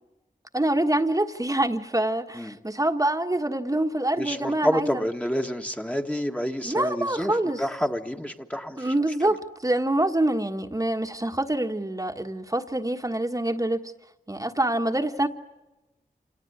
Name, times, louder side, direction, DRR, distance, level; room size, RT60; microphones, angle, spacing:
voice 1, 0.5-5.1 6.6-7.6 8.8-13.8 14.3-15.3, right 1 dB, 20° right, 1.5 m, -25 dB
voice 2, 4.2-8.9, equal, 10° left, 1.6 m, -28 dB
26.5 x 18.5 x 9.4 m
cardioid pair, 45°, 15 cm